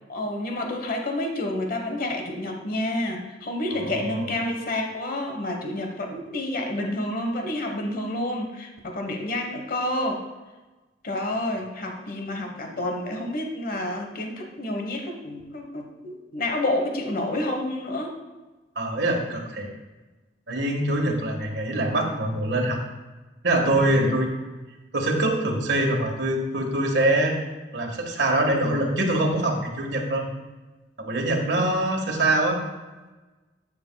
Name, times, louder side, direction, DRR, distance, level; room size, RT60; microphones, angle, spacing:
voice 1, 0.1-10.2 11.0-18.1 31.6-31.7, left 1 dB, 55° left, 3 dB, 1.1 m, -29 dB
voice 2, 3.7-4.3 18.7-19.7 20.5-22.8 23.4-24.4 24.9-27.3 27.7-30.3 31.0-32.6, right 1 dB, 90° right, 1 dB, 1.5 m, -24 dB
11.5 x 6.9 x 2.3 m, 1.2 s
head